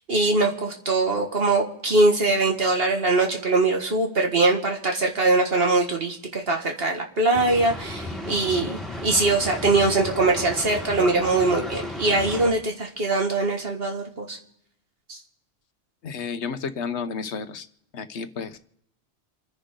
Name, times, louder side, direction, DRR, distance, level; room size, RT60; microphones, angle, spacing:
voice 1, 0.1-14.4 15.1-15.2, right 2 dB, 60° right, 2 dB, 2.1 m, -22 dB
Boat Water vehicle, 7.3-12.5, left 1 dB, ahead, 4.5 m, -34 dB
voice 2, 16.0-17.7 17.9-18.6, left 5 dB, 85° left, 10 dB, 1.2 m, -31 dB
28.5 x 10.5 x 3.8 m, 0.81 s
omnidirectional pair, 1.1 m